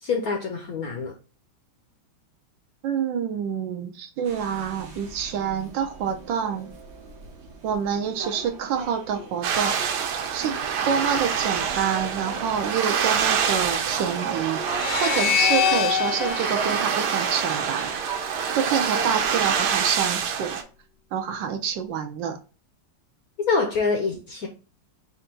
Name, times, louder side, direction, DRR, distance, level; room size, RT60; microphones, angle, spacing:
voice 1, 0.0-1.1 23.5-24.5, left 4 dB, 65° left, 2 dB, 0.9 m, -25 dB
voice 2, 2.8-6.7 7.6-9.8 10.3-10.6 10.8-14.6 15.0-17.9 18.5-20.6 21.1-22.4, right 7 dB, 75° right, 6 dB, 1.2 m, -27 dB
sound 1, 4.2-20.0, right 3 dB, 60° right, 0.7 m, -39 dB
sound 2, 9.4-20.6, right 7 dB, 90° right, 1.6 m, -26 dB
sound 3, 14.7-18.0, left 8 dB, 80° left, 1.4 m, -25 dB
4.3 x 2.5 x 4.3 m, 0.35 s
omnidirectional pair, 2.2 m